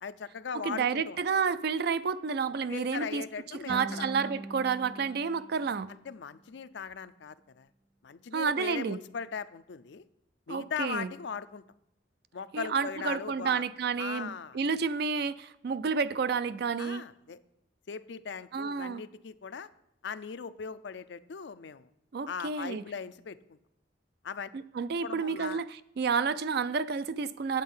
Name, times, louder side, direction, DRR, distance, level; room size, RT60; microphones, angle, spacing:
voice 1, 0.0-1.2 2.7-4.1 5.9-7.7 8.0-10.0 10.5-11.6 12.3-13.6 14.0-14.6 16.8-17.4 17.9-19.7 20.0-21.9 22.3-23.6 24.2-24.5 25.0-25.6, left 6 dB, 65° left, 0.5 m, -39 dB
voice 2, 0.6-3.2 3.7-5.9 8.3-9.0 10.5-11.1 12.5-17.0 18.5-19.0 22.1-22.8 24.5-27.6, right 5 dB, 55° right, 0.4 m, -30 dB
sound 1, 3.7-6.8, right 1 dB, 10° left, 0.4 m, -44 dB
9.0 x 7.6 x 5.5 m
head